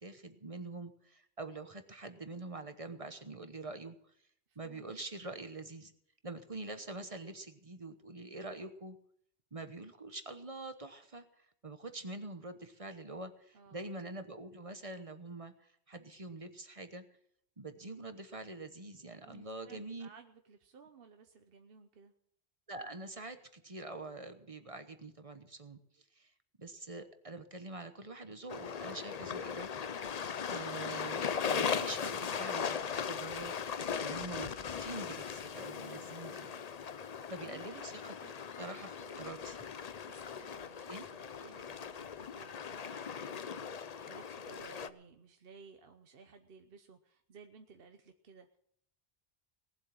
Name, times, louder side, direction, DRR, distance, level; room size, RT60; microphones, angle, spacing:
voice 1, 0.0-4.0 4.6-5.9 6.2-9.0 9.5-17.0 17.6-20.1 22.7-26.3 26.6-29.7 30.4-32.8 33.1-33.5 34.0-34.5 34.8-36.6 37.3-38.1 38.6-39.6 40.9-41.0, right 2 dB, 30° right, 9 dB, 1.1 m, -45 dB
voice 2, 4.5-4.9 13.5-13.9 19.2-22.1 33.6-33.9 35.9-36.2 37.4-37.6 38.2-38.6 39.0-39.5 40.0-48.6, right 5 dB, 60° right, 6 dB, 1.1 m, -58 dB
sound 1, 28.5-44.9, left 7 dB, 45° left, 0.6 m, -39 dB
18.5 x 7.6 x 7.6 m, 0.69 s
omnidirectional pair, 1.1 m